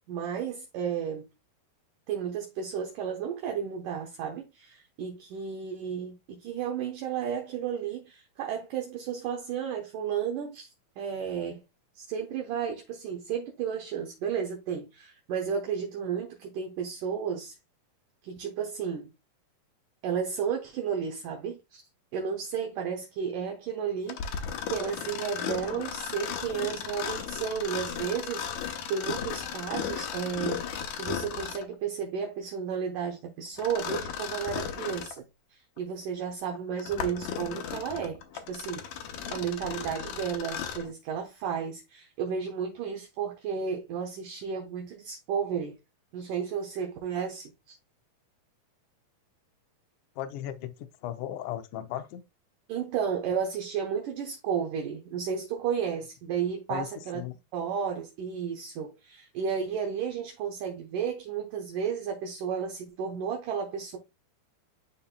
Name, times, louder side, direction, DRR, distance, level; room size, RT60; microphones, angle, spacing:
voice 1, 0.1-1.3 2.1-11.6 12.0-17.5 18.2-19.1 20.0-21.8 22.1-35.2 35.5-38.2 38.5-39.0 39.3-45.8 46.1-47.8 52.7-57.2 57.5-64.0, right 7 dB, 70° right, 2.3 m, -33 dB
Mechanisms, 24.1-31.7 33.6-35.2 35.8-35.9 36.5-40.9, left 8 dB, 70° left, 1.9 m, -36 dB
voice 2, 50.2-52.2 56.7-56.9 57.1-57.3, left 11 dB, 85° left, 1.8 m, -36 dB
11.0 x 4.2 x 2.2 m
omnidirectional pair, 4.3 m